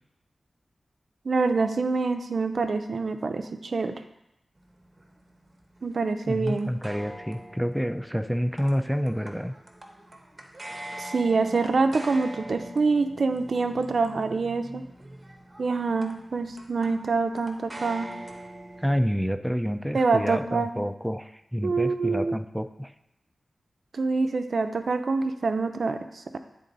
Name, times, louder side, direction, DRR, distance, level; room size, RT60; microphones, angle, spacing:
voice 1, 1.2-4.0 5.8-6.7 11.0-14.8 15.6-18.1 19.9-20.7 21.6-22.4 23.9-26.4, right 4 dB, 70° right, 8 dB, 0.4 m, -26 dB
sound 1, 4.6-19.0, right 1 dB, 30° right, 0.9 m, -44 dB
voice 2, 6.3-9.5 18.8-22.9, equal, 5° right, 8 dB, 0.3 m, -28 dB
9.7 x 3.7 x 4.0 m, 0.85 s
wide cardioid pair, 70°, 0 cm